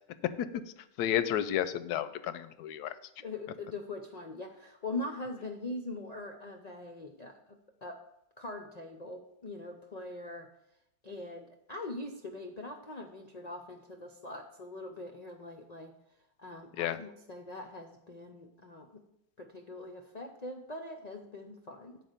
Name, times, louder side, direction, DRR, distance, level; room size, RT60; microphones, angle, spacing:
voice 1, 1.0-2.9 16.8-17.0, left 11 dB, 90° left, 13 dB, 1.1 m, -31 dB
voice 2, 3.2-8.0 8.4-10.5 11.0-15.9 16.4-19.0 19.4-22.0, left 2 dB, 60° left, 4 dB, 0.4 m, -42 dB
7.5 x 4.8 x 6.5 m, 0.81 s
omnidirectional pair, 1.6 m